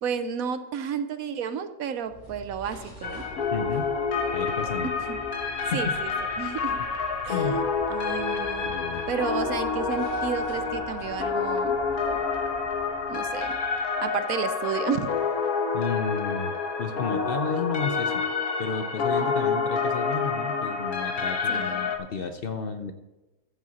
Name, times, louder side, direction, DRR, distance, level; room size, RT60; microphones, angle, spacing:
voice 1, 0.0-3.2 5.1-5.2 5.7-6.1 6.4-6.8 7.2-8.7 9.1-11.7 13.1-13.5 14.0-15.3 19.2-19.3 21.5-21.8, right 7 dB, 75° right, 11 dB, 1.2 m, -32 dB
sound 1, 2.0-14.2, equal, 35° left, 2.5 m, -46 dB
sound 2, 3.0-22.0, left 5 dB, 90° left, 1.7 m, -28 dB
voice 2, 3.5-3.9 4.3-4.9 5.7-6.0 7.3-7.6 8.6-9.0 15.7-16.5 16.8-18.2 18.6-22.9, left 5 dB, 50° left, 7 dB, 0.7 m, -32 dB
14.0 x 7.6 x 4.1 m, 1.0 s
omnidirectional pair, 1.5 m